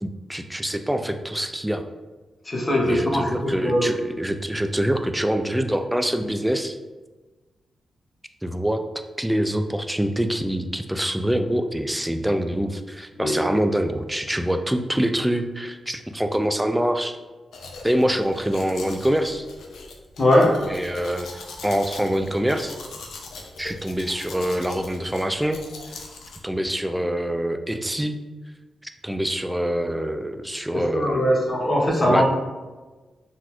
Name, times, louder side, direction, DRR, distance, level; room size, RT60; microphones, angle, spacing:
voice 1, 0.0-1.8 2.8-6.8 8.4-8.8 9.2-17.2 17.8-19.5 20.7-22.8 23.6-25.6 26.4-28.2 28.8-31.3 32.0-32.2, equal, 10° right, 8 dB, 0.3 m, -25 dB
voice 2, 2.4-3.2 3.6-3.9 13.2-13.3 20.2-20.5 30.7-32.2, left 1 dB, 40° left, -2 dB, 1.0 m, -20 dB
Domestic sounds home sounds, 17.5-26.4, left 3 dB, 75° left, 0.4 m, -41 dB
3.9 x 2.1 x 2.9 m, 1.2 s
supercardioid pair, 40°, 0 cm